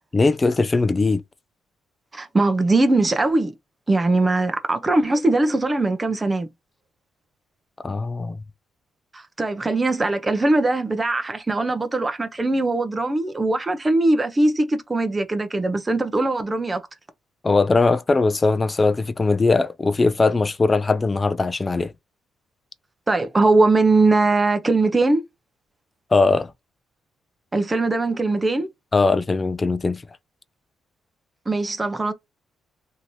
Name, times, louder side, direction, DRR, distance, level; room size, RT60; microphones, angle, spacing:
voice 1, 0.1-1.2 7.8-8.4 17.4-21.9 26.1-26.5 28.9-30.0, left 3 dB, 25° left, 0.4 m, -20 dB
voice 2, 2.1-3.5 3.9-6.5 9.1-16.8 23.1-25.2 27.5-28.7 31.5-32.1, right 2 dB, 20° right, 0.6 m, -21 dB
3.0 x 2.7 x 2.7 m
cardioid pair, 90°, 0 cm